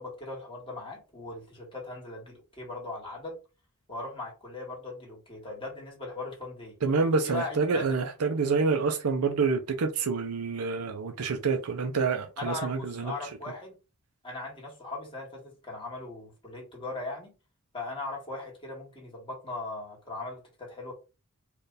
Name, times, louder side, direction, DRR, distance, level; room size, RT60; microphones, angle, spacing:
voice 1, 0.0-3.4 3.9-6.8 7.2-8.0 12.4-13.8 14.2-17.3 17.7-20.9, left 2 dB, 25° left, 1.6 m, -39 dB
voice 2, 6.8-13.1, right 4 dB, 75° right, 0.6 m, -27 dB
4.4 x 2.4 x 3.3 m
head